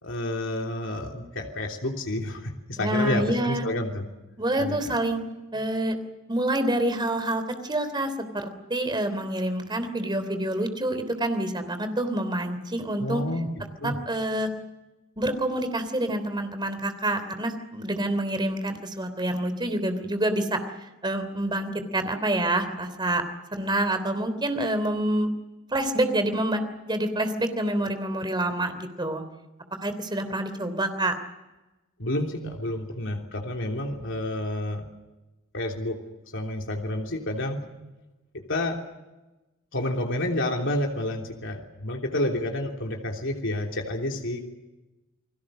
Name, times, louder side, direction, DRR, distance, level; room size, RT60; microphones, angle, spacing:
voice 1, 0.0-4.1 4.6-4.8 13.0-13.5 13.8-14.0 32.0-34.8 35.5-36.0 36.3-37.6 38.3-38.8 39.7-44.4, left 1 dB, 65° left, 1 dB, 3.3 m, -29 dB
voice 2, 2.8-3.6 4.4-5.2 5.5-5.9 6.3-13.2 13.8-14.5 15.2-20.6 21.0-23.2 23.5-25.3 25.7-26.6 26.9-29.2 29.8-31.1, right 1 dB, 20° right, 9 dB, 3.3 m, -27 dB
30.0 x 20.5 x 6.5 m, 1.1 s
head